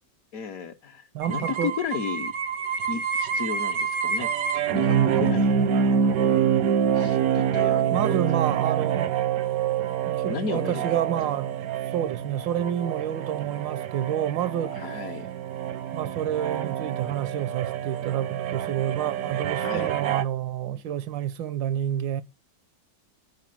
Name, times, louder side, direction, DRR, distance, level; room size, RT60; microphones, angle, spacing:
voice 1, 0.3-2.3 2.9-6.6 6.9-8.2 10.2-10.8 11.2-11.4 14.7-15.3 19.6-20.0, left 6 dB, 60° left, 1.0 m, -34 dB
voice 2, 1.1-1.8 7.9-9.2 9.5-9.6 10.1-11.5 11.9-14.8 15.9-22.2, right 10 dB, 85° right, 1.5 m, -29 dB
sound 1, 1.2-20.2, right 8 dB, 65° right, 0.9 m, -26 dB
9.5 x 4.6 x 7.4 m
omnidirectional pair, 2.0 m